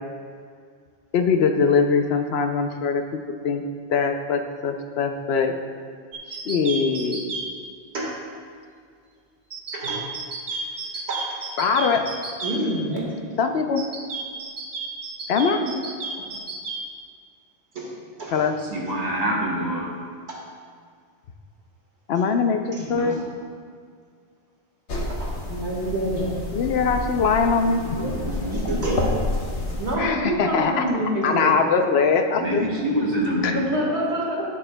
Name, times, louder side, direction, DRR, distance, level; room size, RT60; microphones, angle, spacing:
voice 1, 1.1-3.0 3.4-3.6 3.9-5.6 6.3-7.3 11.6-12.1 13.4-13.8 15.3-15.6 18.3-18.6 22.1-23.2 26.5-27.8 30.0-30.8 31.2-32.6 33.4-33.5, left 5 dB, 70° left, 5 dB, 0.8 m, -22 dB
sound 1, 6.1-7.5 9.5-12.6 13.8-16.8, right 4 dB, 55° right, 1.0 m, -32 dB
voice 2, 9.7-10.0 10.5-10.6 10.9-11.4 12.4-13.2 15.5-15.8 17.7-17.9 18.2-18.5 20.3-20.4 22.7-22.9 25.1-26.4 28.5-29.0 29.8-31.5 33.5-34.4, right 1 dB, 75° right, -3 dB, 1.8 m, -27 dB
voice 3, 18.6-19.9 22.9-23.2 27.6-29.2 32.3-33.6, equal, 35° right, -3 dB, 1.4 m, -26 dB
sound 2, 24.9-30.0, left 2 dB, 90° left, 1.4 m, -29 dB
11.0 x 8.4 x 2.2 m, 2.1 s
omnidirectional pair, 1.1 m